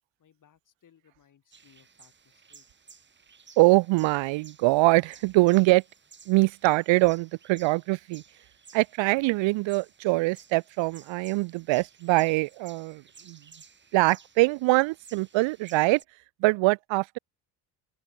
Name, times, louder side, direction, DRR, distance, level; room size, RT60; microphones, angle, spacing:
voice 1, 0.2-2.7, left 9 dB, 45° left, 6.2 m, -62 dB
sound 1, 1.5-16.0, right 5 dB, 25° right, 2.2 m, -55 dB
voice 2, 3.6-5.8 6.3-8.2 8.7-13.4 13.9-16.0 16.4-17.2, right 22 dB, 80° right, 0.7 m, -23 dB
open air
cardioid pair, 140°, 45 cm